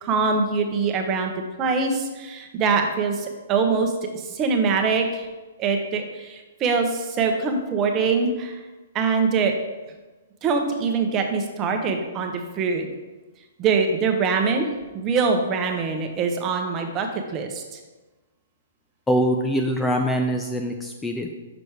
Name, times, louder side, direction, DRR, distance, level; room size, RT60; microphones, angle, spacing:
voice 1, 0.0-1.3 1.6-3.9 4.3-5.2 5.6-8.6 8.9-9.5 10.4-12.9 13.6-14.7 14.9-17.6, right 5 dB, 25° right, 4 dB, 0.9 m, -23 dB
voice 2, 19.1-21.3, equal, 10° left, 3 dB, 0.4 m, -23 dB
6.1 x 5.1 x 4.7 m, 1.2 s
hypercardioid pair, 150°, 0 cm